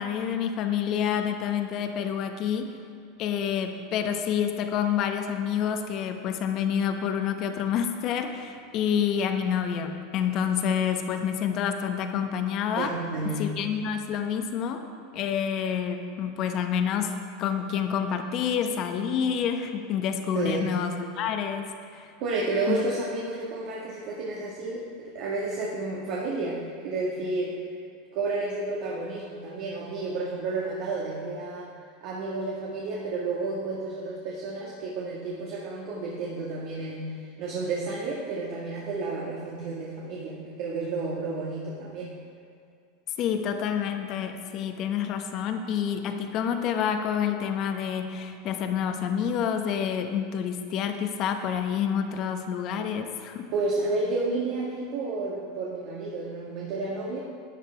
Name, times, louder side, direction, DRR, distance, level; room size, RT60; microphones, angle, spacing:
voice 1, 0.0-2.7 3.2-12.9 13.2-14.8 15.1-22.1 22.7-22.8 43.2-53.5, left 8 dB, 50° left, 6 dB, 1.2 m, -28 dB
voice 2, 12.8-13.6 20.3-20.7 22.2-27.6 28.1-31.7 32.0-42.1 53.5-57.2, right 3 dB, 60° right, -4 dB, 1.9 m, -31 dB
12.5 x 9.7 x 4.6 m, 2.3 s
hypercardioid pair, 95°, 0 cm